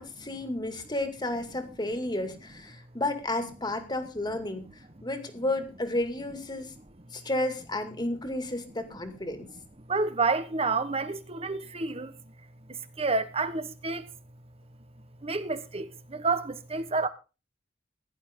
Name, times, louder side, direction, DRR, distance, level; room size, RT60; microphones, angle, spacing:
voice 1, 0.0-4.6 5.0-6.7 7.1-9.5, left 1 dB, 25° left, 2.4 m, -32 dB
voice 2, 9.9-12.1 12.7-14.1 15.2-17.1, right 3 dB, 35° right, 1.2 m, -29 dB
16.5 x 11.5 x 3.7 m
head